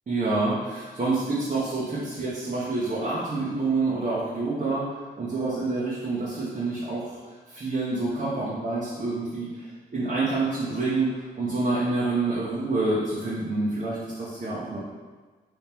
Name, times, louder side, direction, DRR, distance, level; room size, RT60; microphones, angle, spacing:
voice 1, 0.1-7.2 7.5-14.8, right 3 dB, 40° right, -8 dB, 1.0 m, -27 dB
3.1 x 2.9 x 3.4 m, 1.4 s
supercardioid pair, 55°, 21 cm